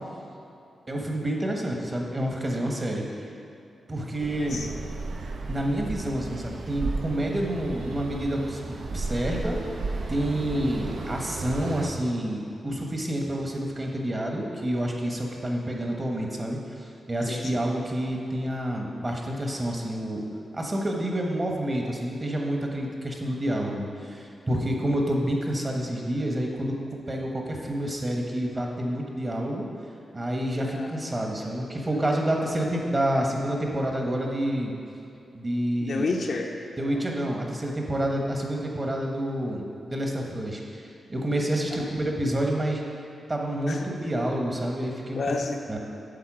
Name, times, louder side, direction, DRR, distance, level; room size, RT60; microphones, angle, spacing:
voice 1, 0.9-3.0 3.9-4.6 5.5-9.6 10.1-20.2 20.5-26.7 27.1-29.7 30.1-34.7 35.3-36.2 36.8-42.8 43.3-45.2 45.7-45.8, right 1 dB, 25° right, 0 dB, 1.1 m, -28 dB
sound 1, 4.2-11.9, right 3 dB, 70° right, 0.7 m, -34 dB
voice 2, 30.7-31.1 35.8-36.5 36.8-37.0 41.8-42.1 43.7-43.8 45.1-45.6, left 3 dB, 60° left, 2 dB, 0.7 m, -31 dB
8.8 x 4.1 x 6.1 m, 2.7 s
wide cardioid pair, 100°, 0 cm